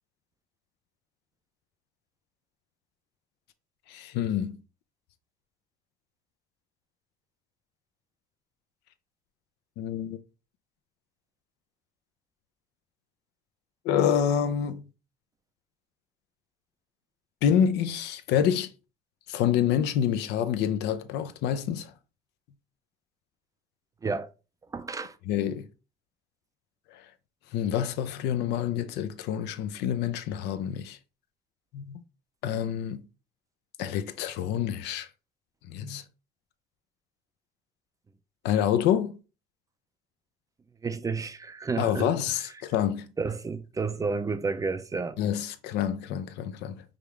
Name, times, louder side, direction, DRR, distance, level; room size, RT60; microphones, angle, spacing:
voice 1, 3.9-4.6 9.8-10.2 13.8-14.8 17.4-18.7 19.3-21.9 25.3-25.7 26.9-27.0 27.5-31.0 31.7-32.0 32.4-33.0 33.8-35.1 35.7-36.0 38.4-39.2 41.8-43.1 45.2-46.8, left 9 dB, 85° left, 0.5 m, -27 dB
voice 2, 24.7-25.1 40.8-42.1 43.2-45.2, right 4 dB, 20° right, 0.3 m, -31 dB
5.1 x 2.4 x 3.1 m
cardioid pair, 110°, 17 cm